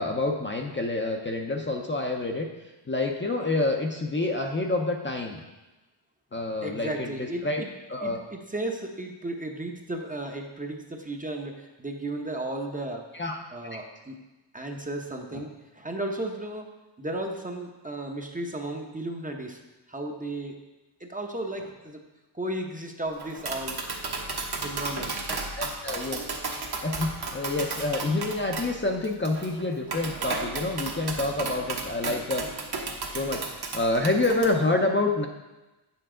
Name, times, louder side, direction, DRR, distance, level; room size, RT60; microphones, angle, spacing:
voice 1, 0.0-2.5 2.9-5.4 6.3-7.6 7.9-8.2 13.1-13.4 13.7-13.8 15.3-15.4 25.6-26.3 26.8-32.5 33.1-35.3, left 2 dB, 25° left, 2 dB, 0.6 m, -28 dB
voice 2, 6.6-7.7 8.0-13.0 13.5-14.2 14.5-16.7 17.0-19.6 19.9-20.6 21.0-22.0 22.3-23.8 24.6-25.6, right 1 dB, 20° right, 2 dB, 0.7 m, -34 dB
Tap, 23.2-34.5, right 3 dB, 55° right, 1.2 m, -34 dB
8.8 x 7.0 x 3.7 m, 1.1 s
wide cardioid pair, 135°, 46 cm